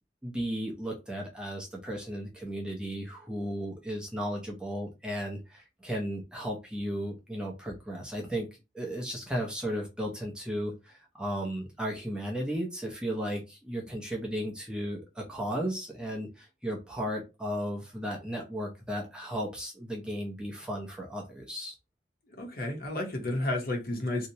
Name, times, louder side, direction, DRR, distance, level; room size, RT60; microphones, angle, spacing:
voice 1, 0.2-8.5 8.7-21.7, equal, 5° right, 0.5 m, -35 dB
voice 2, 22.3-24.3, left 1 dB, 55° left, 0.8 m, -32 dB
2.7 x 2.0 x 2.7 m
head